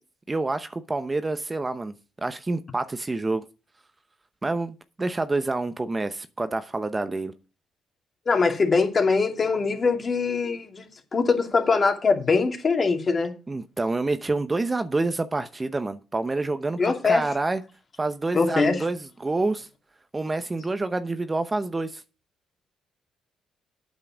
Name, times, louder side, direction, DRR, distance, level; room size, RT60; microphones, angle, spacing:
voice 1, 0.3-3.4 4.4-7.3 13.5-17.6 18.0-19.7 20.1-22.0, right 2 dB, 20° right, 0.8 m, -28 dB
voice 2, 8.3-13.3 16.8-17.2 18.3-18.8, left 4 dB, 40° left, 2.5 m, -22 dB
8.8 x 7.5 x 6.2 m
cardioid pair, 90°, 0 cm